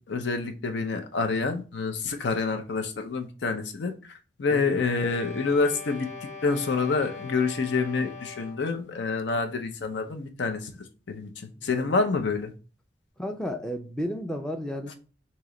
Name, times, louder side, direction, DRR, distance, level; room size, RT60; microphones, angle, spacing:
voice 1, 0.0-3.9 4.4-10.7 11.1-12.5, left 4 dB, 70° left, 0.5 m, -27 dB
voice 2, 4.5-4.8 11.6-11.9 13.2-14.9, equal, 5° left, 0.4 m, -33 dB
sound 1, 4.6-8.8, left 4 dB, 35° left, 0.8 m, -42 dB
3.1 x 2.9 x 3.6 m
head